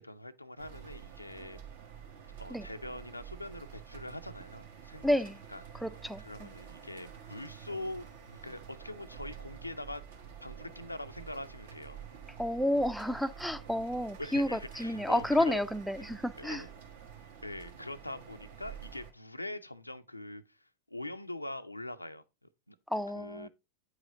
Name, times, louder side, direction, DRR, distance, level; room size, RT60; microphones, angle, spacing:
voice 1, 0.0-1.6 2.4-5.1 5.5-5.8 6.2-10.0 10.4-12.0 14.2-15.6 16.0-16.1 16.4-16.7 17.4-22.8 23.1-23.5, left 1 dB, 85° left, 0.5 m, -43 dB
sound 1, 0.6-19.1, right 8 dB, 60° right, 1.4 m, -49 dB
voice 2, 5.0-5.4 5.8-6.2 12.4-16.6 22.9-23.5, left 1 dB, ahead, 0.4 m, -30 dB
8.8 x 4.9 x 3.7 m
figure-of-eight pair, 90°, 0 cm